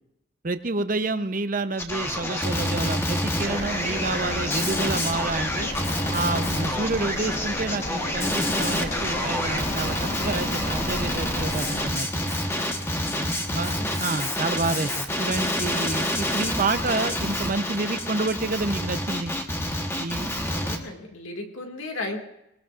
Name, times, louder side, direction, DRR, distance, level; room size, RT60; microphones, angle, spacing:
voice 1, 0.4-5.7 6.1-12.3 13.1-19.3 20.0-20.3, right 3 dB, 40° right, 10 dB, 0.7 m, -29 dB
Male speech man speaking, 1.8-20.8, left 1 dB, 10° left, 1.1 m, -28 dB
sound 1, 3.4-11.8, left 1 dB, 35° left, 1.3 m, -34 dB
voice 2, 13.4-13.9 20.5-22.2, left 2 dB, 70° left, 3 dB, 2.2 m, -36 dB
22.0 x 20.0 x 2.5 m, 0.87 s
head